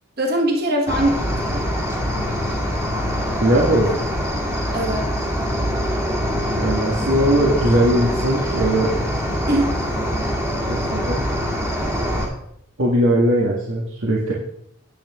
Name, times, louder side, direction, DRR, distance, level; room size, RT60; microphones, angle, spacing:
voice 1, 0.2-1.7 4.7-5.3 9.5-9.8, right 1 dB, 45° right, 1 dB, 1.3 m, -22 dB
Cricket, 0.9-12.3, equal, 15° right, 1.9 m, -24 dB
voice 2, 3.4-4.0 6.6-8.9 10.7-11.2 12.8-14.3, right 1 dB, 70° right, -4 dB, 1.7 m, -19 dB
9.7 x 8.5 x 3.7 m, 0.73 s
head